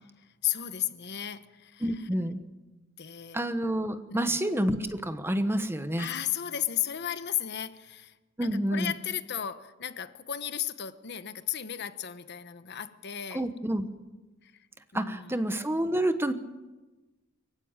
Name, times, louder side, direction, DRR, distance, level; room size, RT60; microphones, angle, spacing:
voice 1, 0.2-2.1 3.0-3.4 4.1-4.4 6.0-8.2 8.7-13.4 14.4-14.7 14.9-15.4, left 10 dB, 55° left, 11 dB, 1.1 m, -34 dB
voice 2, 1.8-2.4 3.3-6.1 8.4-8.9 13.3-13.9 14.9-16.3, right 1 dB, 10° right, 10 dB, 1.1 m, -28 dB
24.0 x 15.5 x 9.0 m, 1.1 s
head